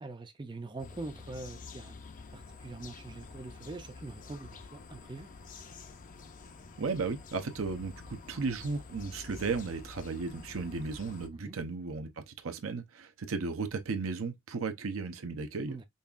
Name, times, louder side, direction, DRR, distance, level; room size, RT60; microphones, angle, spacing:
voice 1, 0.0-1.9 2.3-5.3 11.3-11.6 15.7-15.9, right 2 dB, 20° right, 0.4 m, -43 dB
sound 1, 0.8-11.3, left 4 dB, 40° left, 0.5 m, -49 dB
voice 2, 6.8-15.7, right 4 dB, 80° right, 0.7 m, -35 dB
5.4 x 2.4 x 2.4 m
head